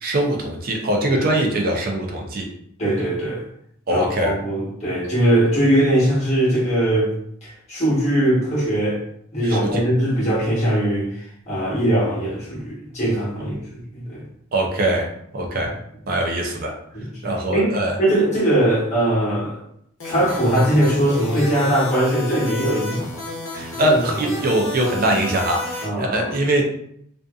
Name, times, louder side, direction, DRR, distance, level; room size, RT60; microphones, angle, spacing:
voice 1, 0.0-2.5 3.9-4.4 9.4-9.8 14.5-15.8 16.1-16.7 17.2-18.0 23.5-26.6, right 1 dB, 45° right, 1 dB, 0.5 m, -22 dB
voice 2, 2.8-3.4 3.9-7.1 7.4-9.0 9.3-14.2 16.9-17.0 17.5-19.6 20.0-23.2 23.7-24.0 25.8-26.3, right 1 dB, 30° left, -7 dB, 1.1 m, -21 dB
sound 1, 20.0-25.9, left 2 dB, 70° left, 0.8 m, -32 dB
2.5 x 2.5 x 2.3 m, 0.71 s
head